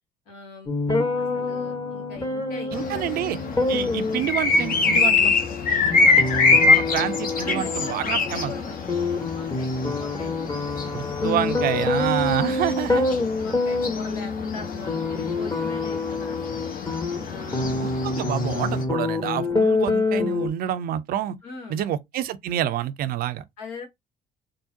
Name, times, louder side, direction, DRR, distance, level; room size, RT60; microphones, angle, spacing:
voice 1, 0.3-0.7 1.2-3.1 3.5-3.8 5.7-7.1 7.4-10.6 12.1-12.5 12.9-16.7 17.2-18.1 21.4-21.8 23.6-23.8, left 2 dB, 75° left, 1.1 m, -41 dB
sound 1, 0.7-20.5, left 3 dB, 20° left, 1.0 m, -27 dB
sound 2, 2.7-18.8, left 4 dB, 50° left, 0.9 m, -25 dB
voice 2, 2.7-3.4 3.7-5.3 6.7-8.5 10.9-13.1 17.8-21.4 21.7-23.4, right 11 dB, 55° right, 0.4 m, -28 dB
3.7 x 2.0 x 2.6 m
hypercardioid pair, 50°, 19 cm